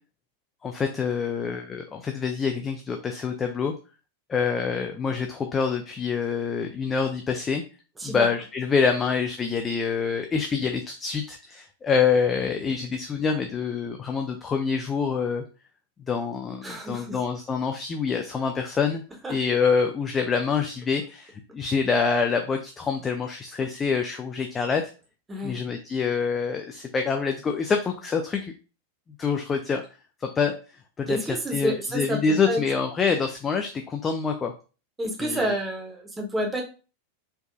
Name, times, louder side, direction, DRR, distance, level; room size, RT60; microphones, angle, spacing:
voice 1, 0.6-3.7 4.3-7.6 8.0-15.4 16.1-19.0 19.3-24.8 25.4-28.5 29.2-29.8 30.2-30.5 31.0-34.5 35.2-35.6, left 5 dB, 20° left, 4 dB, 0.4 m, -26 dB
voice 2, 16.6-17.2 19.2-19.3 25.3-25.6 31.1-32.6 35.0-36.6, right 1 dB, 10° right, 1 dB, 1.0 m, -29 dB
4.5 x 2.4 x 2.6 m, 0.34 s
figure-of-eight pair, 90°, 0 cm